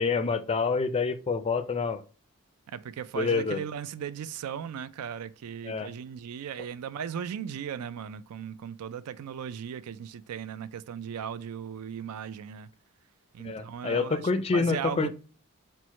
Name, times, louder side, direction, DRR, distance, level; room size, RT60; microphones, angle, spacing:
voice 1, 0.0-2.0 3.1-3.6 5.6-5.9 13.4-15.1, left 4 dB, 25° left, 0.3 m, -27 dB
voice 2, 2.7-12.7 13.3-15.1, right 8 dB, 85° right, 0.4 m, -37 dB
4.6 x 2.1 x 4.0 m
head